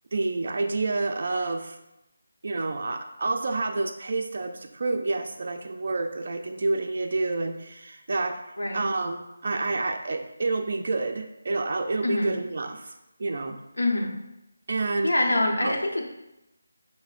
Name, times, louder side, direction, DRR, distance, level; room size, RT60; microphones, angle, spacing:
voice 1, 0.1-1.8 2.4-8.4 8.7-12.9 13.2-13.6 14.7-15.1 15.6-15.7, right 3 dB, 50° right, 4 dB, 0.3 m, -28 dB
voice 2, 13.8-14.1 15.0-16.0, left 2 dB, 75° left, -1 dB, 0.8 m, -25 dB
6.0 x 2.0 x 2.4 m, 0.92 s
figure-of-eight pair, 160°, 0 cm